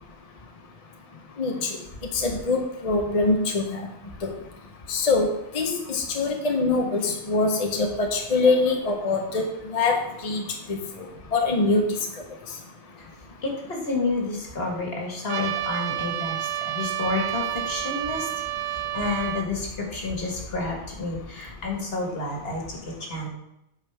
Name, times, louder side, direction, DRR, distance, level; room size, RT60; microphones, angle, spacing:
voice 1, 2.1-3.8 4.2-4.3 4.9-5.3 5.5-9.4 9.7-10.4 10.7-10.8 11.3-11.8, left 3 dB, 40° left, 3 dB, 0.7 m, -23 dB
voice 2, 13.4-18.3 18.6-23.3, left 3 dB, 60° left, 0 dB, 1.8 m, -30 dB
Trumpet, 15.3-19.5, right 14 dB, 75° right, 0.9 m, -30 dB
8.5 x 5.0 x 3.4 m, 0.84 s
omnidirectional pair, 1.2 m